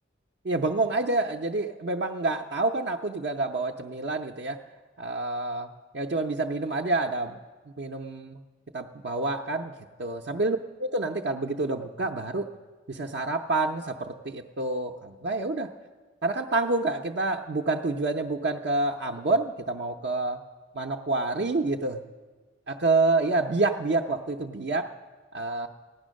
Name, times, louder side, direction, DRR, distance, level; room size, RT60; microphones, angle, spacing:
voice 1, 0.4-4.6 5.0-7.4 7.8-8.4 8.7-9.7 10.0-12.5 12.9-15.7 16.2-20.4 20.7-22.0 22.7-24.9 25.3-25.7, right 2 dB, 55° right, 1 dB, 0.5 m, -28 dB
16.0 x 10.0 x 6.3 m, 1.3 s
head